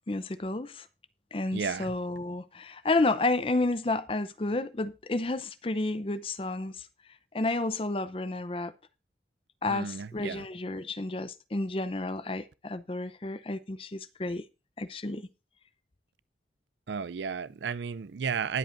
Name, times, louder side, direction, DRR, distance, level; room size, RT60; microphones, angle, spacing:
voice 1, 0.1-0.9 1.3-6.9 7.3-8.7 9.6-14.4 14.8-15.3, left 2 dB, 30° left, 0.6 m, -31 dB
voice 2, 1.5-1.9 9.7-10.4 16.9-18.6, right 6 dB, 75° right, 0.5 m, -33 dB
19.5 x 7.9 x 2.6 m
head